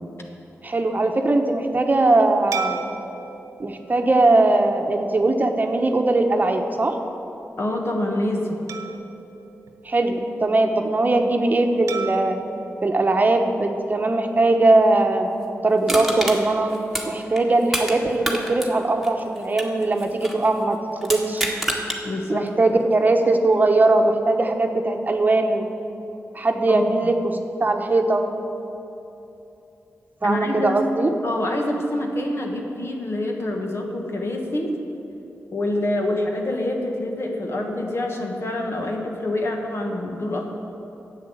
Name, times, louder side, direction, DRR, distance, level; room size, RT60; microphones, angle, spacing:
voice 1, 0.6-2.8 3.6-7.0 9.8-12.4 12.8-15.3 15.6-16.7 17.1-20.8 21.0-21.4 22.3-25.6 26.3-28.3 30.2-31.1, right 2 dB, 35° right, 4 dB, 1.0 m, -20 dB
sound 1, 2.5-5.2 5.8-6.0 8.7-10.5 11.9-14.2, right 6 dB, 90° right, 1.0 m, -37 dB
voice 2, 7.6-8.6 22.0-22.5 26.7-27.1 30.2-30.8 31.2-34.7 35.5-40.5, left 1 dB, 55° left, 1 dB, 1.8 m, -26 dB
Crushing, 15.9-18.0 18.2-20.4 21.0-22.0 22.5-22.6, right 1 dB, ahead, 1.7 m, -27 dB
10.5 x 8.2 x 8.0 m, 2.9 s
cardioid pair, 75°, 5 cm